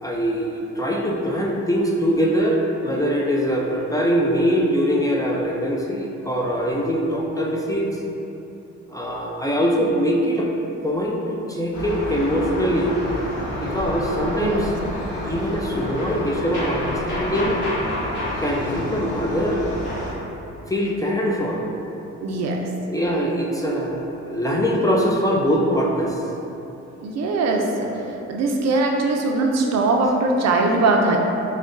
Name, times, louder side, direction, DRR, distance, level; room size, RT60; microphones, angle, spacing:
voice 1, 0.0-7.9 8.9-10.5 10.8-12.9 13.6-14.7 15.2-17.6 18.4-19.6 20.7-21.6 22.9-26.2, equal, 10° left, -3 dB, 0.3 m, -22 dB
sound 1, 11.7-20.1, left 1 dB, 75° left, 1.3 m, -28 dB
voice 2, 14.4-14.7 22.2-22.7 27.0-27.9 28.3-31.2, right 2 dB, 60° right, 1 dB, 0.5 m, -21 dB
6.1 x 2.2 x 2.5 m, 2.9 s
cardioid pair, 90°, 30 cm